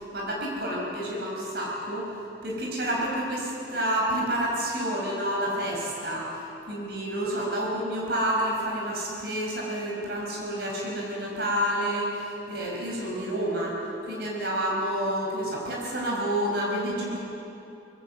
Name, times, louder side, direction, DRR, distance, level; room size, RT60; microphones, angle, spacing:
voice 1, 0.0-2.1 2.4-6.4 6.7-13.8 14.0-17.2, right 1 dB, 60° right, -2 dB, 5.1 m, -29 dB
27.0 x 20.5 x 7.8 m, 2.9 s
head